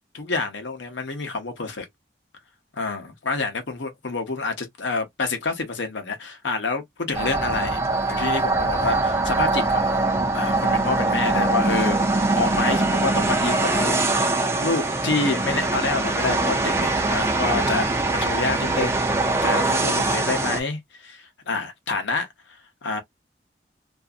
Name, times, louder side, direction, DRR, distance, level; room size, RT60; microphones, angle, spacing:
voice 1, 0.1-1.9 2.7-10.0 10.3-12.0 12.4-19.0 19.4-22.3 22.8-23.0, left 3 dB, 85° left, 0.8 m, -28 dB
sound 1, 7.1-20.6, right 2 dB, 15° right, 0.4 m, -22 dB
2.5 x 2.4 x 2.4 m
head